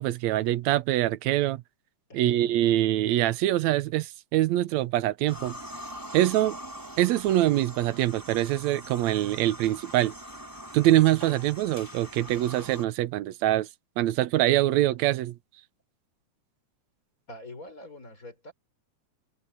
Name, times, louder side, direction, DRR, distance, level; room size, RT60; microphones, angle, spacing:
voice 1, 0.0-1.6 2.1-5.6 6.1-6.6 7.0-10.1 10.7-13.7 14.0-15.4, right 14 dB, 75° right, 2.0 m, -24 dB
sound 1, 5.3-12.9, equal, 5° right, 3.6 m, -43 dB
voice 2, 17.3-18.5, left 1 dB, 25° left, 5.3 m, -44 dB
omnidirectional pair, 3.4 m